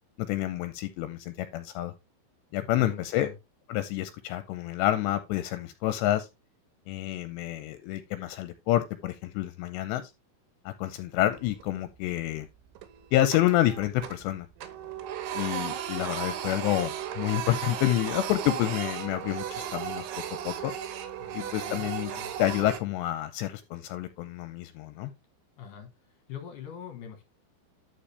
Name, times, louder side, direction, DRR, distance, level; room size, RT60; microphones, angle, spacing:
voice 1, 0.3-1.9 2.5-3.3 3.7-6.3 6.9-10.1 10.7-12.5 13.1-14.5 15.4-20.1 20.4-20.7 21.3-22.1 22.4-25.1, left 14 dB, 85° left, 2.6 m, -28 dB
voice 2, 2.7-3.4 21.2-22.3 25.6-25.9 26.3-27.2, left 8 dB, 65° left, 2.1 m, -43 dB
Printer, 11.2-11.8 12.2-12.3 12.8-14.3 14.6-22.8, right 10 dB, 85° right, 3.4 m, -36 dB
11.5 x 4.9 x 3.3 m
omnidirectional pair, 5.4 m